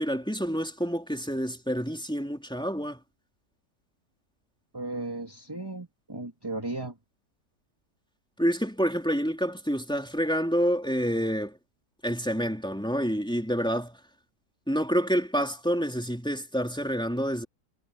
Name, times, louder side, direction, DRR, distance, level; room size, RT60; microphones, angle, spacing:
voice 1, 0.0-3.0 8.4-11.6 12.0-14.0 14.7-17.5, equal, 5° left, 3.8 m, -28 dB
voice 2, 4.7-7.0, right 2 dB, 15° right, 2.2 m, -35 dB
omnidirectional pair, 1.8 m